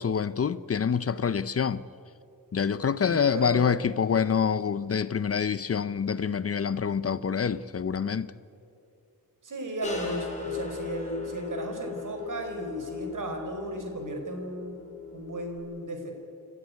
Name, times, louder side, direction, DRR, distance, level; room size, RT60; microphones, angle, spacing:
voice 1, 0.0-1.8 2.5-8.3, left 7 dB, 45° left, 0.7 m, -26 dB
voice 2, 3.0-3.6 9.4-16.1, right 1 dB, 65° right, 4.7 m, -35 dB
sound 1, 9.8-15.6, left 5 dB, 20° left, 5.2 m, -38 dB
28.0 x 13.5 x 9.5 m
cardioid pair, 75°, 34 cm